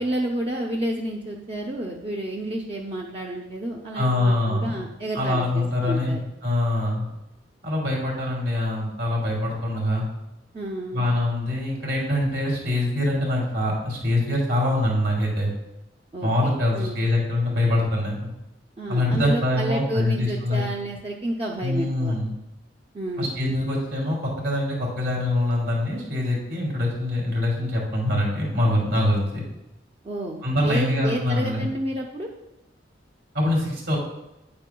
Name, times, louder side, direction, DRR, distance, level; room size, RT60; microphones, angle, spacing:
voice 1, 0.0-6.2 10.5-11.1 16.1-17.0 18.8-22.1 22.9-23.3 30.0-32.3, right 1 dB, 30° right, -1 dB, 0.6 m, -30 dB
voice 2, 3.9-4.7 5.1-7.1 7.6-10.0 10.9-15.5 16.2-18.3 18.9-20.6 21.6-22.3 23.2-29.4 30.4-31.7 33.3-34.0, left 1 dB, 65° right, -2 dB, 2.8 m, -24 dB
9.1 x 8.6 x 2.3 m, 0.93 s
head